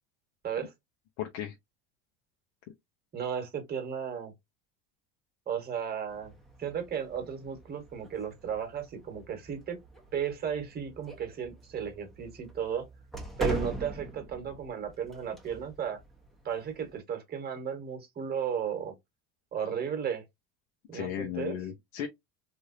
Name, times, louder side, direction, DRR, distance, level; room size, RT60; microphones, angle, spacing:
voice 1, 1.2-1.5 20.9-22.1, left 10 dB, 70° left, 0.8 m, -35 dB
voice 2, 3.1-4.3 5.5-6.3 6.6-9.8 10.1-12.9 13.4-16.0 16.4-18.9 19.5-20.2 20.9-21.6, right 8 dB, 25° right, 1.3 m, -34 dB
sound 1, 6.1-17.0, right 1 dB, ahead, 0.8 m, -42 dB
3.3 x 2.6 x 2.5 m
supercardioid pair, 125°, 34 cm